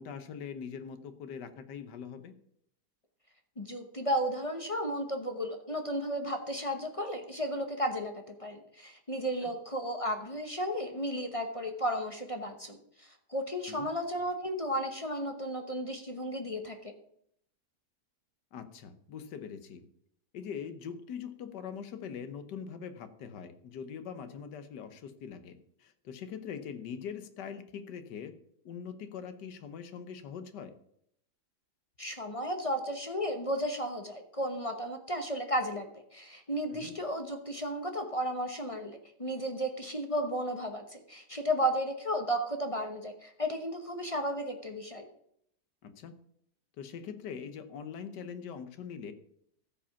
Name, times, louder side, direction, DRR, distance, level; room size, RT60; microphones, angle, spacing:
voice 1, 0.0-2.3 9.4-9.5 13.7-13.9 18.5-19.8 20.3-28.3 28.6-30.7 36.7-36.9 45.8-46.1 46.8-49.1, left 7 dB, 85° left, 11 dB, 1.6 m, -42 dB
voice 2, 3.6-16.9 32.0-45.1, equal, 25° left, 5 dB, 0.8 m, -34 dB
14.0 x 5.0 x 5.7 m, 0.71 s
omnidirectional pair, 1.8 m